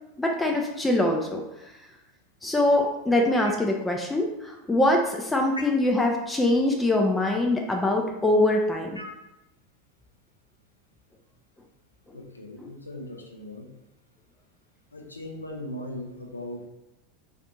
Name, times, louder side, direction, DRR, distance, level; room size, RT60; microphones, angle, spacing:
voice 1, 0.2-1.4 2.4-9.0, left 1 dB, 10° left, 1 dB, 0.4 m, -23 dB
voice 2, 12.1-13.7 14.9-16.7, left 1 dB, 90° left, 2 dB, 0.5 m, -38 dB
2.5 x 2.5 x 4.1 m, 0.92 s
figure-of-eight pair, 85°, 0 cm